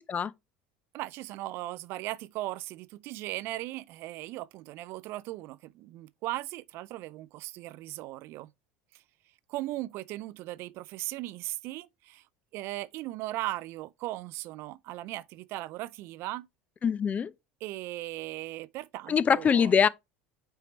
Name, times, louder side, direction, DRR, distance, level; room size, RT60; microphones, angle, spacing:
voice 1, 0.9-8.5 8.9-9.0 9.5-12.2 12.5-16.5 17.6-19.7, right 17 dB, 55° right, 0.4 m, -38 dB
voice 2, 16.8-17.3 19.1-19.9, left 7 dB, 30° left, 0.4 m, -23 dB
8.7 x 4.5 x 3.0 m
hypercardioid pair, 70°, 5 cm